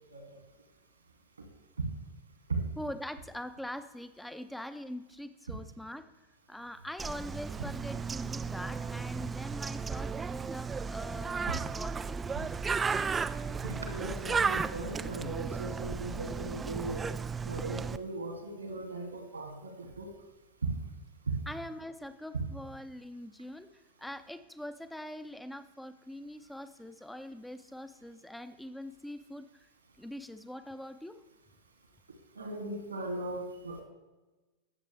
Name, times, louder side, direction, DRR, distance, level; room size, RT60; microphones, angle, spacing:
voice 1, 2.8-6.1 6.5-12.2 21.5-29.7 30.0-31.2, left 1 dB, 5° left, 10 dB, 0.8 m, -43 dB
Bird, 7.0-18.0, right 5 dB, 15° right, 0.4 m, -34 dB
voice 2, 13.6-17.0 17.5-20.1 22.3-22.4 32.4-33.8, right 2 dB, 75° right, 3 dB, 2.7 m, -38 dB
21.0 x 7.6 x 3.5 m, 1.1 s
figure-of-eight pair, 90°, 0 cm